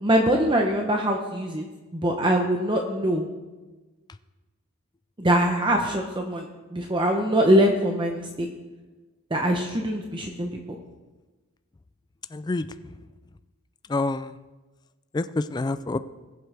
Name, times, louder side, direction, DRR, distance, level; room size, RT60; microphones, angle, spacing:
voice 1, 0.0-1.7 1.9-3.3 5.2-8.5 9.3-10.5, right 1 dB, 20° right, 2 dB, 0.8 m, -23 dB
voice 2, 12.3-12.7 13.9-14.4 15.1-16.0, left 2 dB, 20° left, 12 dB, 0.3 m, -27 dB
20.0 x 7.7 x 3.4 m, 1.2 s
head